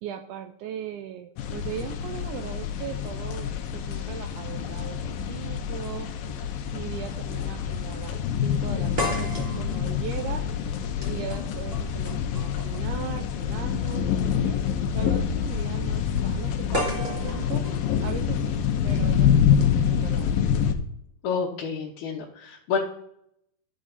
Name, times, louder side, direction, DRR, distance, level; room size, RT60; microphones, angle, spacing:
voice 1, 0.0-6.1 6.7-10.4 11.1-14.1 14.4-14.6 14.9-17.6 18.0-20.3, right 9 dB, 80° right, 7 dB, 1.9 m, -38 dB
sound 1, 1.4-20.8, left 8 dB, 85° left, 2.5 m, -26 dB
sound 2, 7.0-7.2 7.5-7.6 9.0-13.0 14.2-14.3 16.7-18.8, equal, 25° right, 1.3 m, -34 dB
voice 2, 21.2-22.8, left 6 dB, 70° left, -5 dB, 2.4 m, -29 dB
12.5 x 5.0 x 4.1 m, 0.75 s
omnidirectional pair, 4.0 m